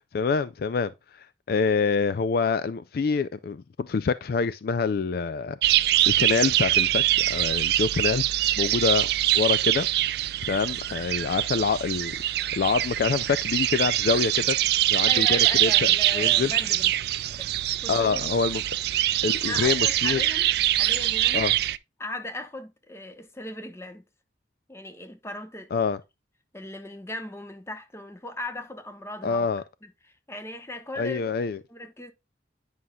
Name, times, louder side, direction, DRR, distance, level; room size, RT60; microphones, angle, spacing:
voice 1, 0.0-5.6 6.1-8.3 8.6-9.1 9.3-9.9 10.5-12.2 12.5-14.6 14.9-16.5 17.9-18.6 19.2-20.2 21.3-21.5 25.7-26.0 29.2-29.6 31.0-31.6, left 5 dB, 55° left, 0.4 m, -26 dB
sound 1, 5.6-21.8, right 14 dB, 60° right, 0.3 m, -24 dB
voice 2, 15.1-16.9 17.4-17.5 17.8-18.2 19.4-20.5 20.7-21.4 22.0-24.0 24.7-25.9 26.5-29.5 30.3-31.3 31.7-32.1, left 1 dB, 15° left, 0.9 m, -37 dB
9.4 x 5.5 x 2.3 m
head